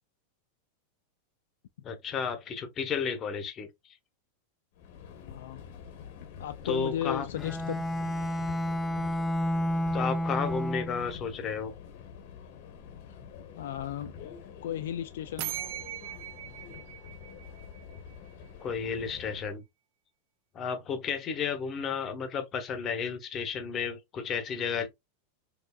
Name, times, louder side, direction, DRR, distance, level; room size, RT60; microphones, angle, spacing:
voice 1, 1.8-3.7 6.6-7.3 9.9-11.7 18.6-19.6 20.5-24.9, left 6 dB, 30° left, 0.9 m, -32 dB
Subway metro underground, 4.7-19.6, left 7 dB, 60° left, 1.0 m, -47 dB
voice 2, 5.2-5.6 6.4-7.8 13.1-13.2 13.6-14.1 14.6-15.6, left 10 dB, 80° left, 0.3 m, -35 dB
Bowed string instrument, 7.3-11.2, equal, 10° left, 0.5 m, -30 dB
sound 1, 15.4-18.1, right 15 dB, 50° right, 0.4 m, -40 dB
4.7 x 2.6 x 2.3 m
supercardioid pair, 140°, 0 cm